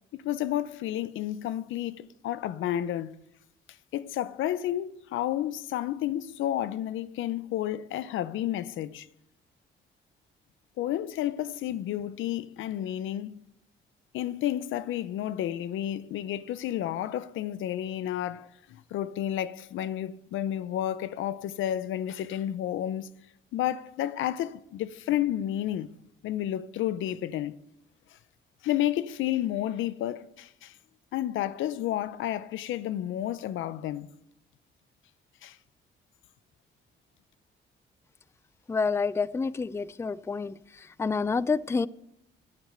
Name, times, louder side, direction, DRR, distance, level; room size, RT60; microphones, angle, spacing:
voice 1, 0.2-3.1 3.9-9.1 10.8-13.4 14.1-23.1 23.5-25.9 26.2-27.6 28.6-30.7 31.1-34.1 35.4-35.6, left 12 dB, 80° left, 0.6 m, -31 dB
voice 2, 38.7-41.9, left 4 dB, 15° left, 0.4 m, -28 dB
11.5 x 9.6 x 6.8 m
cardioid pair, 90°, 20 cm